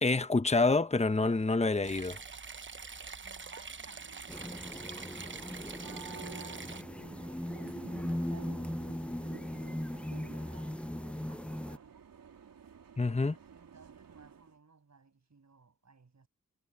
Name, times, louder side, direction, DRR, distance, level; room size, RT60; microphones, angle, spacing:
voice 1, 0.0-2.2 13.0-13.4, left 3 dB, 20° left, 1.1 m, -27 dB
sound 1, 1.8-6.8, right 5 dB, 35° right, 0.9 m, -45 dB
voice 2, 3.2-7.5 8.0-10.9 11.3-12.0 13.5-16.3, right 4 dB, 55° right, 6.8 m, -60 dB
sound 2, 3.7-14.6, right 7 dB, 85° right, 3.3 m, -52 dB
sound 3, 4.3-11.8, left 1 dB, 5° left, 0.5 m, -39 dB
cardioid pair, 60°, 33 cm